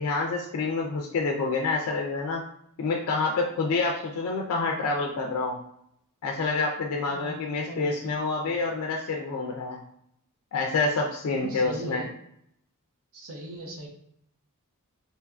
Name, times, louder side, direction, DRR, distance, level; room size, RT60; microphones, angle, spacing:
voice 1, 0.0-2.4 2.8-5.6 6.2-9.8 10.5-12.0, left 3 dB, 75° left, 1 dB, 0.3 m, -27 dB
voice 2, 7.1-8.6 11.3-12.1 13.1-13.9, right 1 dB, 65° right, 0 dB, 0.6 m, -40 dB
2.7 x 2.4 x 2.2 m, 0.72 s
head